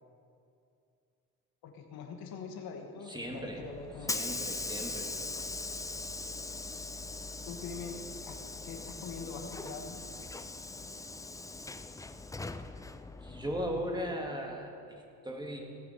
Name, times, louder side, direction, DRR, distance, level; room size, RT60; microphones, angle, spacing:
voice 1, 1.6-4.2 7.5-8.4 8.6-10.0, left 5 dB, 70° left, 3 dB, 1.6 m, -43 dB
voice 2, 3.1-3.6 4.1-5.1 13.2-14.7 15.2-15.6, equal, 10° right, 0 dB, 2.1 m, -37 dB
Hiss / Sliding door, 3.4-14.2, left 3 dB, 10° left, 0.4 m, -41 dB
18.0 x 6.8 x 5.8 m, 2.5 s
cardioid pair, 90°, 38 cm